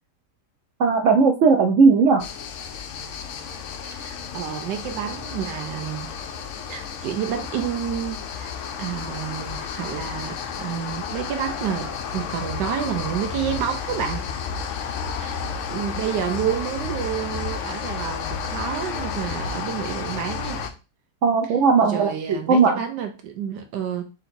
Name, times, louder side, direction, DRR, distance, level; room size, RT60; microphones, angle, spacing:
voice 1, 0.8-2.2 21.2-22.8, right 4 dB, 70° right, 4 dB, 0.7 m, -17 dB
sound 1, 2.2-20.7, left 6 dB, 65° left, 0.7 m, -32 dB
voice 2, 3.8-6.1 6.7-8.5 8.8-14.2 15.1-15.4 15.7-20.6 21.8-24.0, right 9 dB, 90° right, 5 dB, 1.3 m, -29 dB
3.8 x 2.9 x 4.2 m, 0.32 s
omnidirectional pair, 1.8 m